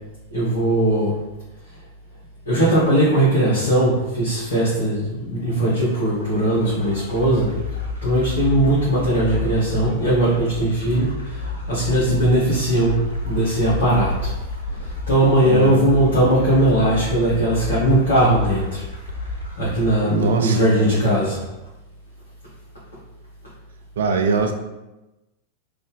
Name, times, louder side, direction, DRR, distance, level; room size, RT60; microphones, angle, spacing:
voice 1, 0.3-1.1 2.5-7.5 8.0-13.0 13.2-14.3 14.8-18.8 19.6-21.4, right 1 dB, 70° left, -9 dB, 1.1 m, -19 dB
sound 1, 5.8-21.4, left 3 dB, 90° right, 0.8 m, -31 dB
voice 2, 15.4-15.8 20.1-20.6 24.0-24.5, right 4 dB, 65° right, 5 dB, 0.4 m, -21 dB
3.4 x 2.7 x 3.5 m, 1.0 s
figure-of-eight pair, 90°, 0 cm